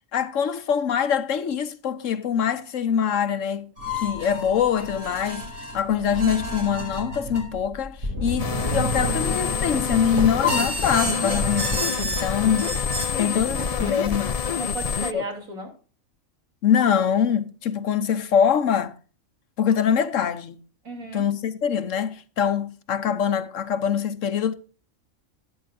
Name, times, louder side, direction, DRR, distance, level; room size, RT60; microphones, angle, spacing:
voice 1, 0.1-3.7 4.0-5.5 5.7-12.8 13.2-14.3 15.1-15.2 16.6-18.9 19.6-20.6 21.1-24.5, left 8 dB, 70° left, 1.2 m, -24 dB
sound 1, 3.8-13.1, equal, 55° right, 3.3 m, -30 dB
sound 2, 8.4-15.1, left 6 dB, 45° left, 0.5 m, -27 dB
voice 2, 13.1-14.2 14.5-15.7 20.9-21.3, right 2 dB, 80° right, 3.6 m, -36 dB
13.0 x 10.5 x 2.6 m
omnidirectional pair, 1.4 m